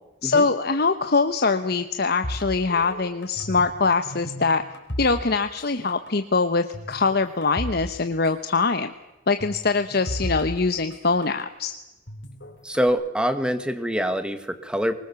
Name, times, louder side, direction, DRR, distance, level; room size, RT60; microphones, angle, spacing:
voice 1, 0.2-4.6 5.0-8.9 9.3-11.8, left 4 dB, 55° left, 8 dB, 0.9 m, -23 dB
sound 1, 2.2-3.8 4.0-5.6 5.9-6.1 6.7-7.9 8.1-8.2 9.4-11.5 12.1-12.9, equal, 70° left, 4.1 m, -35 dB
voice 2, 12.6-14.9, equal, 5° right, 9 dB, 1.6 m, -25 dB
24.0 x 21.0 x 7.0 m, 1.0 s
head